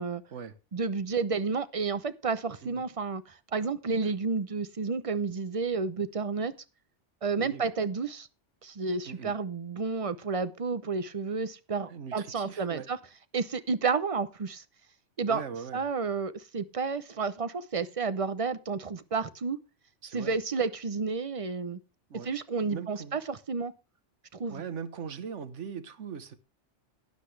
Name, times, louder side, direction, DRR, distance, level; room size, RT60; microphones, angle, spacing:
voice 1, 0.7-6.5 7.2-8.3 8.6-13.0 13.3-14.6 15.2-15.4 15.7-19.6 20.1-21.8 22.2-23.7 24.3-24.6, right 4 dB, 35° right, 0.7 m, -31 dB
voice 2, 11.9-12.9 15.3-15.8 20.0-20.3 22.1-22.3 22.7-23.2 24.5-26.4, right 6 dB, 75° right, 1.4 m, -40 dB
12.0 x 9.9 x 3.3 m
omnidirectional pair, 1.2 m